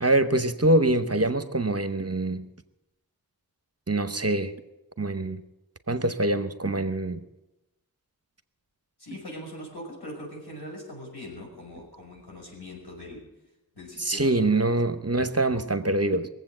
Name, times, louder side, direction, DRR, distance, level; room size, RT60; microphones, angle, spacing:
voice 1, 0.0-2.4 3.9-4.5 5.0-5.4 5.9-7.2 14.1-16.3, right 2 dB, 40° right, 0.9 m, -24 dB
voice 2, 9.0-13.2 13.8-14.7, left 1 dB, 85° left, 5.8 m, -41 dB
20.5 x 7.9 x 7.8 m
wide cardioid pair, 45°, 38 cm